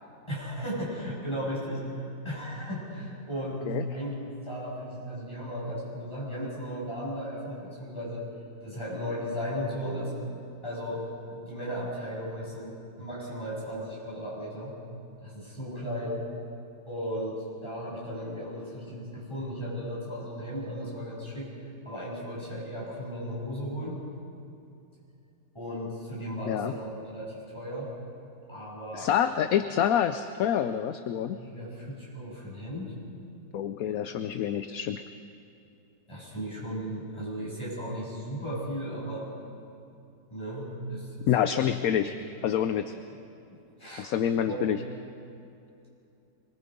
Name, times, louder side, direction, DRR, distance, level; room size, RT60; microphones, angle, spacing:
voice 1, 0.3-8.2 8.6-10.1 10.6-11.0 11.3-14.8 15.2-16.3 16.8-21.6 21.8-24.0 25.5-27.9 28.5-29.1 31.3-32.9 36.1-39.3 40.3-41.1 41.4-42.2 42.9-43.1 43.8-44.1 44.4-44.6, equal, 15° left, -7 dB, 7.9 m, -36 dB
voice 2, 28.9-31.4 33.5-35.0 41.3-42.2 42.4-42.9 44.0-44.8, left 9 dB, 65° left, 10 dB, 1.0 m, -27 dB
25.5 x 22.5 x 5.3 m, 2.6 s
omnidirectional pair, 1.9 m